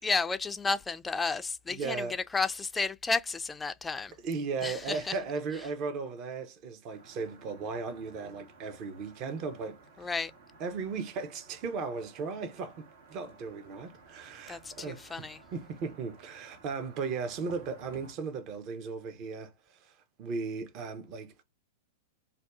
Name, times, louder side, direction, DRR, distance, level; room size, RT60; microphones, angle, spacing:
voice 1, 0.0-4.2 4.6-5.2 10.0-10.3 14.5-15.4, left 4 dB, 15° left, 0.3 m, -32 dB
voice 2, 1.7-2.1 4.2-10.1 10.6-21.4, right 4 dB, 40° right, 0.7 m, -37 dB
sound 1, 6.9-18.1, right 3 dB, 70° right, 1.2 m, -56 dB
2.6 x 2.3 x 3.4 m
hypercardioid pair, 110°, 0 cm